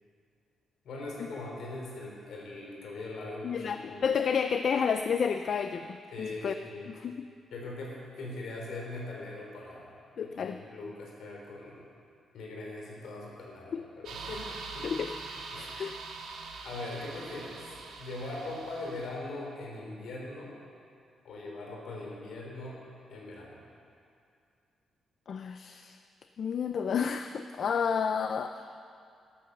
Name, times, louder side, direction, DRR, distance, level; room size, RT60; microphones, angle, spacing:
voice 1, 0.8-4.5 6.1-6.9 7.5-9.9 10.2-11.9 12.3-14.5 14.7-15.1 15.5-15.7 16.6-20.5 21.2-22.8 23.1-23.6, left 2 dB, 60° left, -1 dB, 3.7 m, -41 dB
voice 2, 3.4-6.5 6.9-7.2 10.2-10.6 13.7-13.8 14.8-15.1 15.5-16.0 25.3-26.0 26.4-28.6, left 6 dB, 40° left, 8 dB, 0.4 m, -30 dB
sound 1, 14.0-19.1, right 4 dB, 85° right, 1.9 m, -43 dB
13.0 x 12.5 x 6.7 m, 2.4 s
cardioid pair, 180°, 0 cm